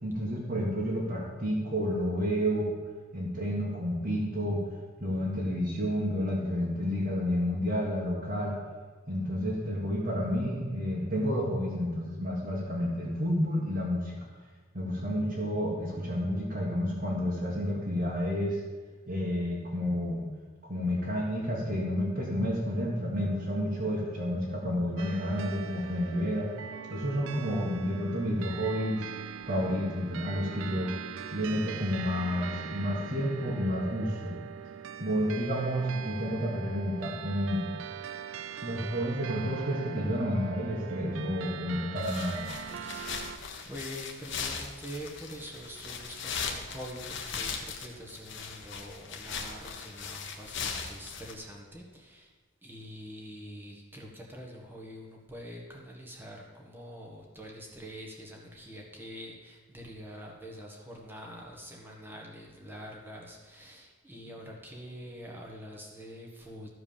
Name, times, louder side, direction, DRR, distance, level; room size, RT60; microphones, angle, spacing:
voice 1, 0.0-2.7 3.1-4.6 5.0-8.6 9.1-14.2 14.7-18.6 19.1-20.2 20.6-26.5 26.9-29.1 29.5-30.9 31.3-34.3 35.0-37.6 38.6-42.4, equal, 40° right, -6 dB, 1.8 m, -30 dB
sound 1, 25.0-43.4, right 7 dB, 60° right, 0.4 m, -41 dB
sound 2, 42.0-51.3, left 5 dB, 55° left, 1.1 m, -39 dB
voice 2, 42.8-43.3 43.6-52.3 52.6-66.7, equal, 10° right, -1 dB, 1.5 m, -45 dB
13.0 x 4.8 x 7.1 m, 1.4 s
head